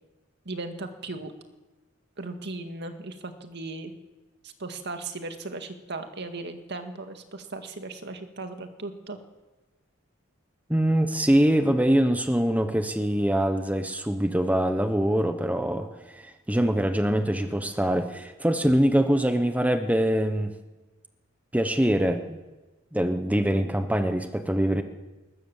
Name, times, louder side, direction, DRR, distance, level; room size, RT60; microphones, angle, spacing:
voice 1, 0.5-1.3 2.2-3.9 4.4-9.2, right 3 dB, 60° right, 6 dB, 2.1 m, -37 dB
voice 2, 10.7-20.5 21.5-22.4 22.9-24.8, right 1 dB, 10° right, 7 dB, 1.1 m, -24 dB
20.5 x 20.0 x 7.3 m, 1.2 s
head